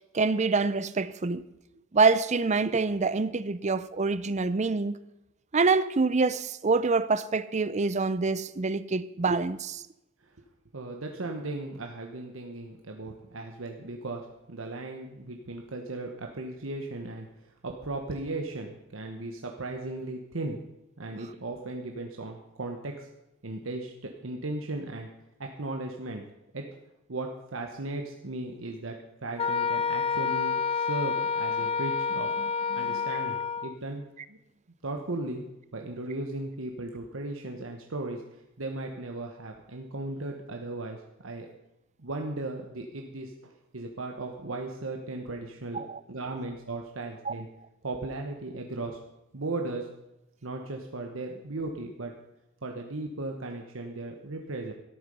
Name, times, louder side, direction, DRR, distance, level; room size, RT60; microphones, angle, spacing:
voice 1, 0.1-1.4 1.9-5.0 5.5-9.8 32.7-33.0 45.7-46.0 47.3-47.4, right 4 dB, 35° right, 0.6 m, -26 dB
voice 2, 10.7-20.6 21.0-23.1 23.4-23.9 24.2-25.1 25.4-26.2 26.5-26.8 27.1-32.4 32.7-34.4 34.8-35.4 35.7-41.0 41.2-41.5 42.0-45.8 46.1-47.5 47.8-49.0 49.3-49.9 50.4-52.1 52.6-54.7, right 2 dB, 75° right, 1.2 m, -36 dB
Wind instrument woodwind instrument, 29.4-33.8, left 6 dB, 30° left, 0.8 m, -28 dB
13.5 x 10.5 x 5.4 m
head